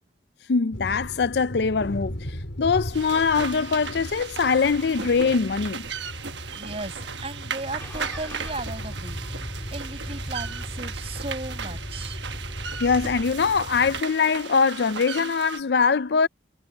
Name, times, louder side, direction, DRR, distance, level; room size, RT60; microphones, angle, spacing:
voice 1, 0.5-2.2 2.6-5.9 12.8-16.3, left 5 dB, 70° left, 0.5 m, -22 dB
sound 1, 0.7-14.0, equal, 85° left, 3.6 m, -39 dB
sound 2, 2.9-15.6, right 7 dB, 85° right, 1.2 m, -36 dB
voice 2, 6.5-9.2 9.7-12.2, right 2 dB, 35° right, 7.0 m, -36 dB
Car / Engine starting, 7.8-13.2, equal, 15° left, 1.8 m, -37 dB
head